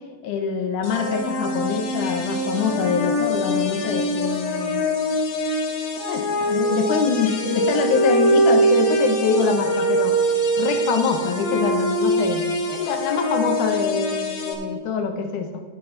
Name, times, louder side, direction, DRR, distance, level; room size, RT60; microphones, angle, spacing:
voice 1, 0.2-4.8 6.1-10.2 10.6-15.6, left 5 dB, 75° left, 6 dB, 2.0 m, -24 dB
sound 1, 0.8-14.5, right 1 dB, 60° left, 2.3 m, -23 dB
11.5 x 6.5 x 6.0 m, 1.5 s
omnidirectional pair, 3.9 m